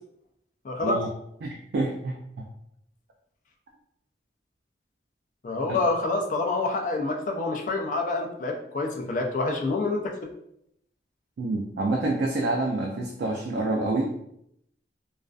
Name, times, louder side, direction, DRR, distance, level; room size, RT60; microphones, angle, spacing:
voice 1, 0.6-1.0 5.4-10.3, left 3 dB, 45° left, 2 dB, 0.4 m, -27 dB
voice 2, 1.4-2.5 5.7-5.8 11.4-14.2, right 2 dB, 65° right, 0 dB, 0.3 m, -27 dB
2.3 x 2.3 x 2.3 m, 0.76 s
head